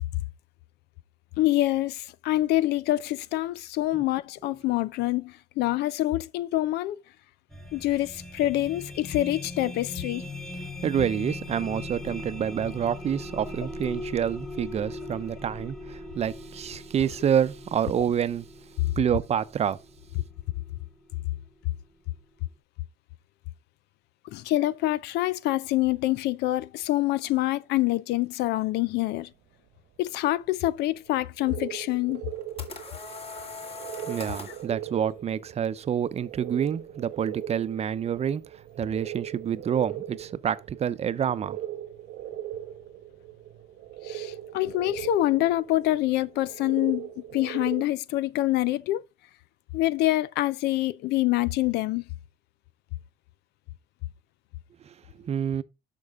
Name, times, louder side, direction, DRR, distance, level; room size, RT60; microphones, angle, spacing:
voice 1, 1.4-7.0 7.7-10.3 24.2-29.3 30.0-32.2 34.5-34.6 44.0-49.0 49.7-52.0, left 16 dB, 80° left, 0.5 m, -26 dB
sound 1, 7.5-21.5, left 2 dB, ahead, 1.3 m, -40 dB
voice 2, 10.8-18.5 19.0-19.8 34.1-38.4 38.8-41.6 54.9-55.6, right 8 dB, 40° right, 0.7 m, -28 dB
sound 2, 31.1-31.2 31.4-47.8, right 12 dB, 80° right, 1.1 m, -39 dB
sound 3, 32.1-34.7, left 3 dB, 35° left, 2.1 m, -40 dB
11.0 x 6.1 x 3.6 m
cardioid pair, 110°, 17 cm